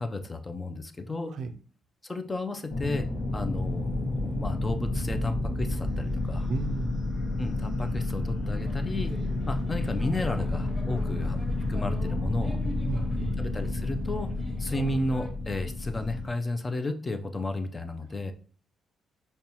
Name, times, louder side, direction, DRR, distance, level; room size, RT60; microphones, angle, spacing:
voice 1, 0.0-1.3 2.0-3.1 3.3-6.5 7.4-9.1 9.5-11.4 11.7-12.6 13.4-14.3 14.6-18.3, left 2 dB, 25° left, 7 dB, 0.5 m, -33 dB
sound 1, 2.7-16.3, left 2 dB, 60° left, 0.9 m, -30 dB
voice 2, 6.5-6.9 12.9-13.3, right 5 dB, 70° right, 6 dB, 0.4 m, -35 dB
sound 2, 8.7-15.3, equal, ahead, 1.0 m, -46 dB
5.3 x 2.3 x 2.9 m, 0.43 s
cardioid pair, 90°, 0 cm